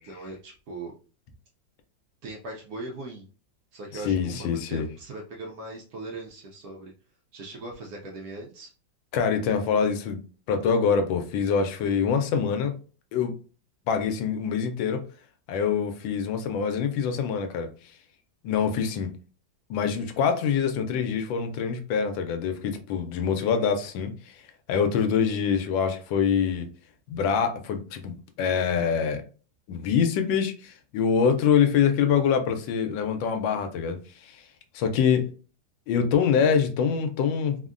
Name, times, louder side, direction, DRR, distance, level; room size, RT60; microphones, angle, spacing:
voice 1, 0.0-0.9 2.2-3.3 3.7-6.9 7.3-8.7, right 2 dB, 70° right, 0 dB, 0.9 m, -39 dB
voice 2, 4.0-4.9 9.1-10.2 10.5-12.7 13.1-13.3 13.9-15.0 15.5-17.7 18.4-19.1 19.7-24.1 24.7-26.7 27.1-28.1 28.4-29.2 29.7-34.4 34.7-35.3 35.9-37.6, left 6 dB, 85° left, 6 dB, 1.3 m, -25 dB
3.5 x 2.1 x 2.4 m, 0.37 s
omnidirectional pair, 2.0 m